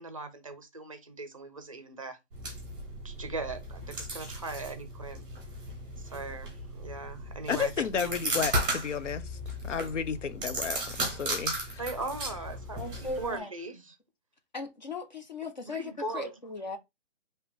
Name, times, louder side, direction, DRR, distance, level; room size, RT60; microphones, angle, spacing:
voice 1, 0.0-2.2 3.0-5.3 6.0-8.1 11.8-14.0 15.6-16.4, right 3 dB, 30° right, 0.5 m, -39 dB
sound 1, 2.3-13.4, right 1 dB, 5° right, 0.9 m, -36 dB
voice 2, 7.5-9.4 9.6-11.8, left 7 dB, 80° left, 0.9 m, -32 dB
voice 3, 12.8-13.5 14.5-15.8 16.1-16.8, left 3 dB, 40° left, 0.6 m, -37 dB
5.1 x 2.9 x 3.4 m
hypercardioid pair, 180°, 36 cm